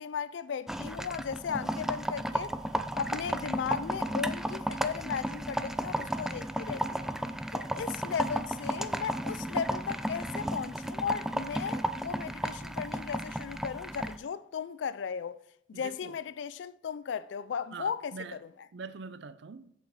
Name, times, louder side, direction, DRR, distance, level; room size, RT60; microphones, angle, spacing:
voice 1, 0.0-2.6 3.0-7.1 7.5-15.4 15.7-18.5, left 6 dB, 75° left, 0.4 m, -36 dB
sound 1, 0.7-14.2, right 1 dB, 5° right, 0.3 m, -34 dB
voice 2, 15.7-16.2 17.7-18.4 18.7-19.7, right 4 dB, 65° right, 0.5 m, -43 dB
7.9 x 6.7 x 4.6 m
head